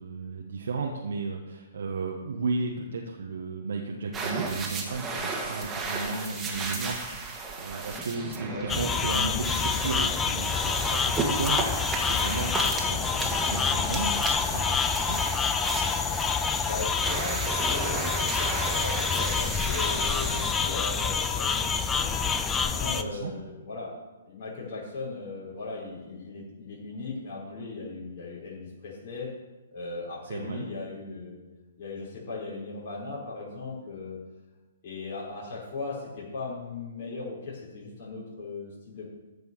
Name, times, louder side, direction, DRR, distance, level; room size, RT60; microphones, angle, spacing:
voice 1, 0.0-14.1 14.5-15.2 22.8-23.3 30.2-30.7, right 4 dB, 65° right, 0 dB, 1.4 m, -34 dB
sound 1, 4.1-20.5, right 3 dB, 15° right, 2.0 m, -34 dB
sound 2, 8.7-23.0, left 5 dB, 15° left, 0.7 m, -27 dB
voice 2, 16.6-22.1 22.6-23.9 24.2-29.3 29.7-31.4 31.8-34.2 34.8-39.1, left 3 dB, 40° left, -6 dB, 4.9 m, -38 dB
14.5 x 5.5 x 7.0 m, 1.1 s
figure-of-eight pair, 120°, 0 cm